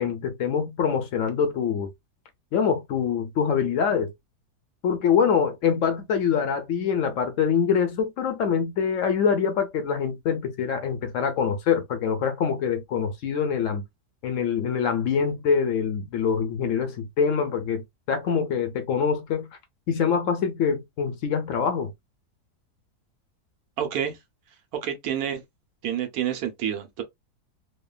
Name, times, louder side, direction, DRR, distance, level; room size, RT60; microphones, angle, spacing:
voice 1, 0.0-1.9 2.5-4.1 4.8-13.8 14.2-19.5 19.9-21.9, left 7 dB, 70° left, 0.7 m, -24 dB
voice 2, 23.8-24.2 24.8-25.4 25.8-27.0, right 9 dB, 70° right, 1.1 m, -28 dB
3.1 x 2.1 x 2.2 m
omnidirectional pair, 1.7 m